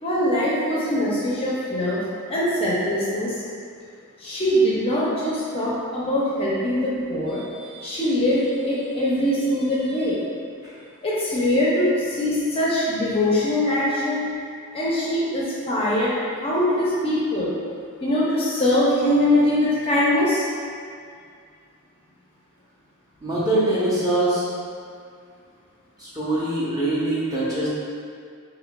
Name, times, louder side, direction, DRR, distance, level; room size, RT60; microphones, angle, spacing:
voice 1, 0.0-2.0 2.3-3.4 4.2-10.2 11.0-14.2 14.7-16.1 16.4-17.5 18.0-20.5, left 1 dB, 25° left, -7 dB, 0.6 m, -22 dB
voice 2, 23.2-24.4 26.0-27.7, right 1 dB, 15° right, -9 dB, 0.8 m, -23 dB
4.5 x 3.2 x 2.3 m, 2.2 s
head